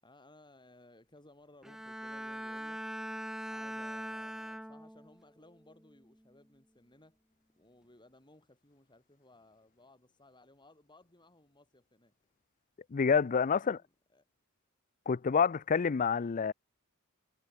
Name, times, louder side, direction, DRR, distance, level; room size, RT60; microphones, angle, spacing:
voice 1, 0.0-2.8 3.5-7.2 7.6-12.1 13.6-14.3, left 2 dB, 20° left, 6.0 m, -60 dB
Bowed string instrument, 1.6-5.2 5.7-6.1, equal, ahead, 0.7 m, -41 dB
voice 2, 12.9-13.8 15.1-16.5, left 6 dB, 35° left, 0.4 m, -28 dB
head